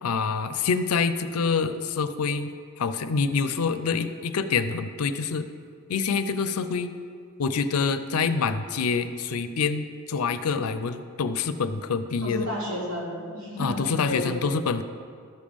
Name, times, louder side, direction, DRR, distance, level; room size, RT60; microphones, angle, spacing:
voice 1, 0.0-2.5 2.8-5.5 5.9-6.9 7.4-12.5 13.6-14.8, left 5 dB, 85° left, 11 dB, 0.5 m, -26 dB
voice 2, 12.2-14.4, left 1 dB, 85° right, -6 dB, 2.9 m, -32 dB
13.0 x 5.3 x 5.1 m, 2.2 s
head